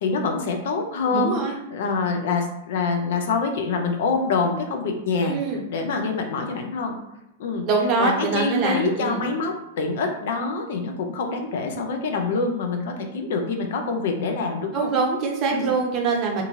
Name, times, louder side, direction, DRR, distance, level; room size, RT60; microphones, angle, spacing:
voice 1, 0.0-1.4 1.7-5.4 5.7-7.0 7.4-7.7 8.0-14.9 15.5-15.7, left 4 dB, 60° left, 3 dB, 0.4 m, -25 dB
voice 2, 1.1-1.6 5.2-5.6 7.7-9.2 14.7-16.4, right 4 dB, 35° right, 0 dB, 0.7 m, -23 dB
2.5 x 2.5 x 2.8 m, 0.87 s
figure-of-eight pair, 100°, 0 cm